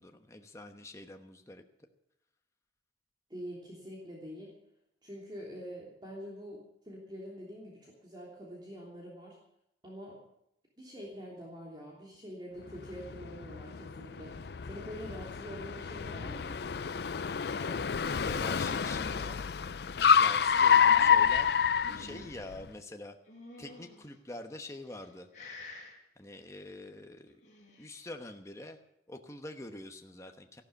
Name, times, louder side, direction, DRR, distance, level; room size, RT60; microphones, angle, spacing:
voice 1, 0.0-1.9 17.5-19.4 20.2-21.5 21.9-23.2 23.6-25.3 26.2-27.4 27.8-28.8 29.1-30.6, left 2 dB, 15° left, 4 dB, 1.0 m, -46 dB
voice 2, 3.3-4.5 5.0-9.4 9.8-10.2 10.8-16.6, equal, 25° right, -4 dB, 3.2 m, -45 dB
Car, 12.8-22.6, left 7 dB, 65° left, 0.5 m, -28 dB
sound 1, 20.7-22.4 23.3-24.1 24.7-25.1 25.3-25.9 27.3-28.0, left 2 dB, 45° left, 5.1 m, -49 dB
14.5 x 12.0 x 7.1 m, 0.79 s
head